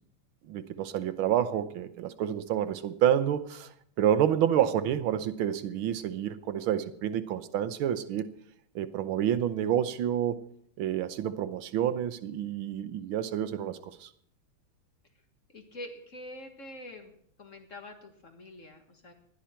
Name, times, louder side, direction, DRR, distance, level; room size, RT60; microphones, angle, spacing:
voice 1, 0.5-3.7 4.0-8.3 8.7-10.5 10.8-14.1, right 10 dB, 80° right, 12 dB, 1.6 m, -28 dB
voice 2, 15.5-17.1 17.4-19.1, left 1 dB, 40° left, 5 dB, 1.8 m, -45 dB
19.5 x 12.5 x 4.4 m, 0.68 s
omnidirectional pair, 2.3 m